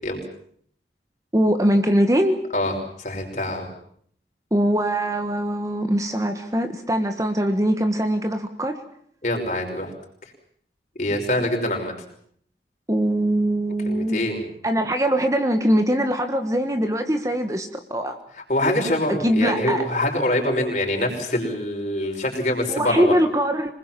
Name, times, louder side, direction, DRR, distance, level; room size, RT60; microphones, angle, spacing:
voice 1, 1.3-2.4 4.5-8.8 12.9-14.2 14.6-18.2 19.1-19.8 22.7-23.7, equal, 20° right, 7 dB, 1.4 m, -22 dB
voice 2, 2.5-3.7 9.2-9.9 11.0-11.9 13.8-14.4 18.5-23.2, left 1 dB, 45° left, 2 dB, 5.8 m, -24 dB
26.0 x 20.5 x 7.6 m, 0.63 s
head